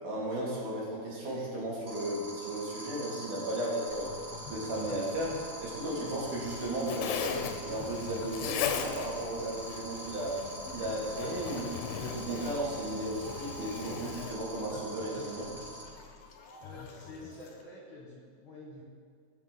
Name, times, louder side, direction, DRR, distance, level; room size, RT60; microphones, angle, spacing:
voice 1, 0.0-4.1 4.5-10.4 10.7-15.5, right 1 dB, 75° right, -5 dB, 3.8 m, -35 dB
sound 1, 1.9-15.8, right 1 dB, 60° right, 3.9 m, -45 dB
sound 2, 3.9-17.6, left 5 dB, 65° left, 1.7 m, -49 dB
Zipper (clothing), 6.1-14.3, left 8 dB, 85° left, 2.2 m, -39 dB
voice 2, 16.6-18.8, left 2 dB, 50° left, -4 dB, 1.9 m, -48 dB
16.0 x 6.2 x 3.8 m, 2.2 s
omnidirectional pair, 3.7 m